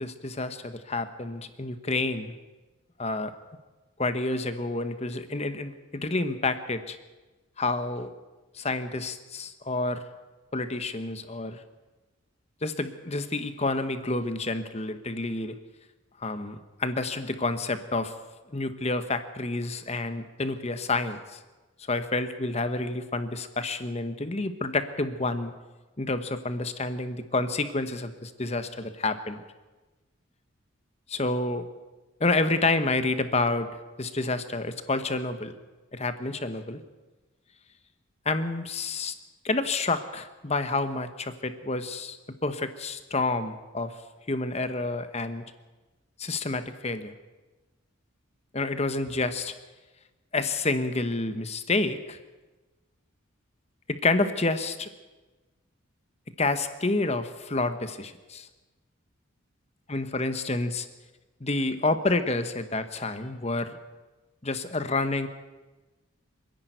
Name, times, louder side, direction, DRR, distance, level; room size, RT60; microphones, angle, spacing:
voice 1, 0.0-2.3 3.0-3.3 4.0-7.0 7.6-8.1 8.5-10.0 10.5-11.6 12.6-15.6 16.2-18.1 18.5-21.4 21.9-25.5 26.0-29.4 31.1-31.7 32.2-33.7 34.0-35.5 35.9-36.8 38.2-39.1 39.4-42.2 42.4-43.9 44.3-45.4 46.2-47.1 48.5-49.5 50.3-52.2 53.9-54.9 56.4-58.5 59.9-60.9 61.4-63.8 64.4-65.3, left 2 dB, 30° left, 10 dB, 1.2 m, -29 dB
26.5 x 10.5 x 9.3 m, 1.2 s
head